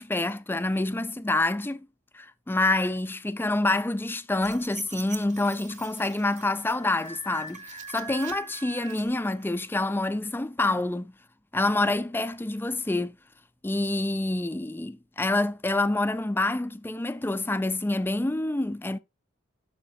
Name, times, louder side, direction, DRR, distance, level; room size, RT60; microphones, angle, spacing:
voice 1, 0.0-1.9 2.1-11.1 11.5-13.2 13.6-19.0, left 2 dB, 10° left, 0.4 m, -27 dB
sound 1, 4.4-9.6, right 5 dB, 35° right, 0.9 m, -42 dB
11.5 x 4.9 x 2.7 m
head